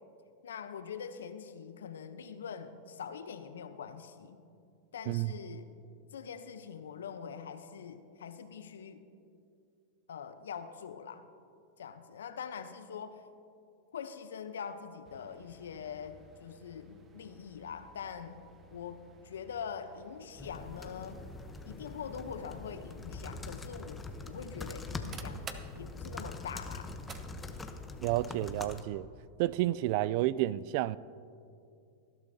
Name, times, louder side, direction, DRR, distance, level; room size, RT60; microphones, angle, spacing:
voice 1, 0.4-4.4 4.9-5.7 6.1-9.1 10.1-11.3 11.8-13.2 13.9-18.4 18.7-21.2 21.7-25.5 25.8-26.9, left 7 dB, 90° left, 0.8 m, -43 dB
sound 1, 15.0-27.2, right 5 dB, 30° right, 0.8 m, -54 dB
sound 2, 20.4-28.8, left 3 dB, 15° left, 0.8 m, -43 dB
voice 2, 28.0-29.1 29.4-31.0, right 15 dB, 55° right, 0.3 m, -30 dB
19.0 x 12.0 x 2.8 m
hypercardioid pair, 115°, 0 cm